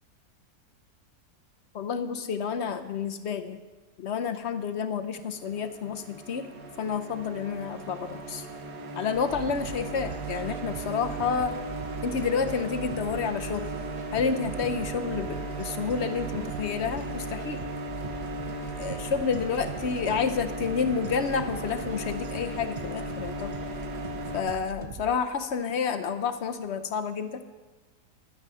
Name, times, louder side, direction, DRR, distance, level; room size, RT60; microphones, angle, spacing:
voice 1, 1.7-3.6 4.0-6.5 6.8-8.5 9.0-11.5 12.0-13.6 14.1-17.6 18.8-23.5 24.3-27.4, left 6 dB, 55° left, 8 dB, 0.8 m, -29 dB
sound 1, 5.2-24.4, right 2 dB, 85° right, 1.8 m, -37 dB
sound 2, 9.1-25.1, right 5 dB, 60° right, 0.4 m, -41 dB
12.0 x 9.7 x 5.5 m, 1.2 s
omnidirectional pair, 1.7 m